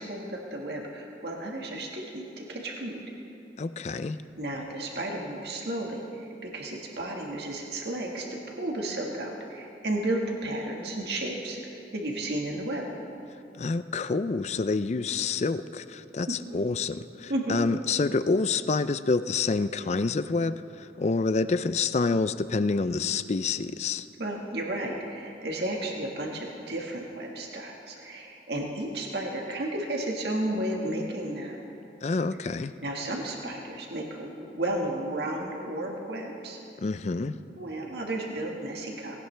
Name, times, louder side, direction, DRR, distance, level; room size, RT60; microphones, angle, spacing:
voice 1, 0.0-3.0 4.4-12.8 16.5-16.6 17.3-17.6 24.2-31.6 32.8-36.6 37.6-39.2, right 1 dB, 65° right, 0 dB, 1.7 m, -33 dB
voice 2, 3.6-4.2 13.6-24.1 32.0-32.7 36.8-37.4, left 4 dB, 40° left, 13 dB, 0.4 m, -27 dB
19.0 x 17.5 x 3.4 m, 2.8 s
head